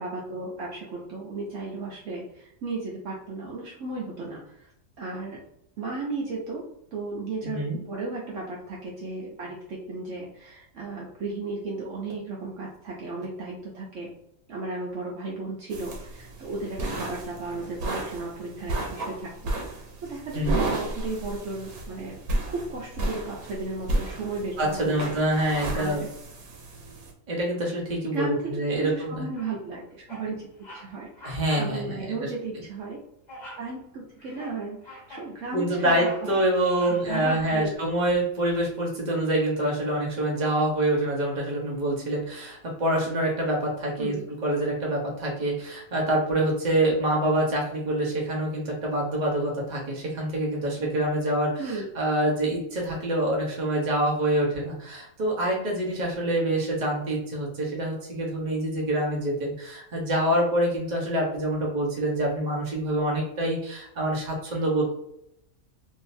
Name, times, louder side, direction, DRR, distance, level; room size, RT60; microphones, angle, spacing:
voice 1, 0.0-4.7 5.0-5.4 5.8-6.6 6.9-14.1 14.5-22.2 22.4-24.9 25.7-26.1 28.1-30.5 30.7-33.0 33.6-36.4 36.9-37.7 44.0-44.3 51.6-51.9, right 3 dB, 65° right, -3 dB, 1.0 m, -35 dB
voice 2, 7.4-7.8 20.3-20.6 24.6-26.1 27.3-29.3 31.2-32.3 35.5-44.1 44.4-64.9, right 1 dB, 35° right, -3 dB, 1.0 m, -26 dB
sound 1, 15.7-27.1, right 2 dB, 85° right, 1.2 m, -33 dB
Bird vocalization bird call bird song, 29.3-29.7 30.1-30.3 30.6-30.9 31.1-31.7 32.1-32.2 33.3-33.7 34.2-35.3 35.7-37.7, equal, 35° left, 0.9 m, -44 dB
3.7 x 2.7 x 2.6 m, 0.76 s
omnidirectional pair, 1.5 m